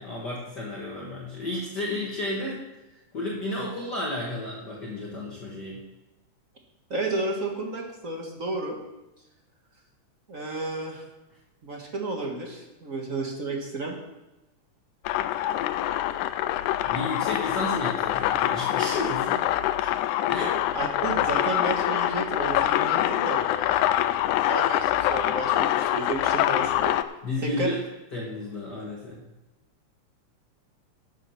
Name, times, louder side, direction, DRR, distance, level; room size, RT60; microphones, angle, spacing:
voice 1, 0.0-5.8 16.8-19.5 20.3-20.6 27.2-27.8 28.1-29.2, left 2 dB, 40° left, -4 dB, 1.9 m, -32 dB
voice 2, 6.9-8.8 10.3-11.0 11.6-14.0 20.7-24.0 24.4-27.0 27.4-27.8, right 2 dB, 35° right, 1 dB, 1.4 m, -32 dB
sound 1, 15.0-27.0, left 13 dB, 85° left, 2.0 m, -25 dB
12.5 x 7.5 x 5.8 m, 1.0 s
omnidirectional pair, 3.4 m